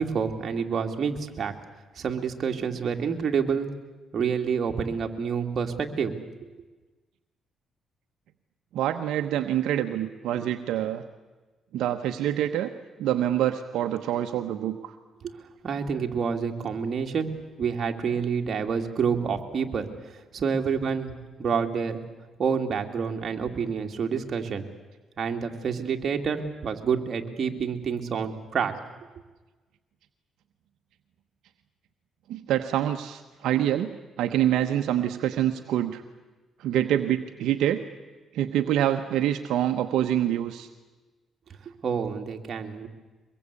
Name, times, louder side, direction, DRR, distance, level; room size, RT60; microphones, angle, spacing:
voice 1, 0.0-1.5 2.0-3.7 4.1-6.2 15.2-15.3 15.6-17.3 17.6-22.0 22.4-24.6 25.2-28.7 41.8-42.9, right 6 dB, 50° right, 3 dB, 2.6 m, -28 dB
voice 2, 8.7-11.0 11.7-12.7 13.0-14.9 32.3-33.9 34.2-36.0 36.6-37.8 38.3-40.7, right 11 dB, 85° right, 6 dB, 1.1 m, -26 dB
24.0 x 21.5 x 8.4 m, 1.2 s
cardioid pair, 90°, 0 cm